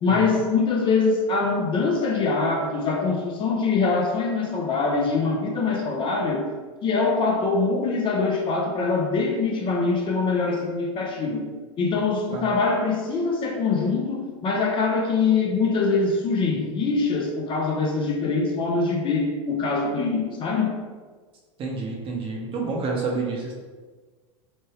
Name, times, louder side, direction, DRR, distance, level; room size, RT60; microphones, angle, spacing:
voice 1, 0.0-6.4 6.8-11.4 11.8-20.7, left 4 dB, 30° left, 0 dB, 0.5 m, -23 dB
voice 2, 21.6-23.5, right 4 dB, 35° right, -1 dB, 0.7 m, -29 dB
3.1 x 2.1 x 3.1 m, 1.4 s
hypercardioid pair, 100°, 17 cm